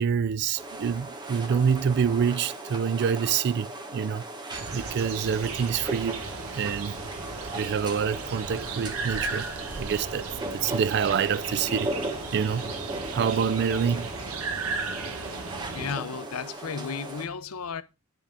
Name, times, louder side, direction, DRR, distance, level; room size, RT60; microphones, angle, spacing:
voice 1, 0.0-4.3 4.7-6.2 6.6-7.0 7.5-9.5 9.8-11.9 12.3-12.7 13.1-14.1, right 7 dB, 50° right, 0.3 m, -26 dB
sound 1, 0.6-17.3, right 2 dB, 20° right, 1.0 m, -37 dB
sound 2, 4.5-15.9, right 4 dB, 85° right, 1.2 m, -36 dB
voice 2, 15.7-17.8, left 6 dB, 85° left, 0.6 m, -33 dB
9.9 x 3.5 x 5.0 m
head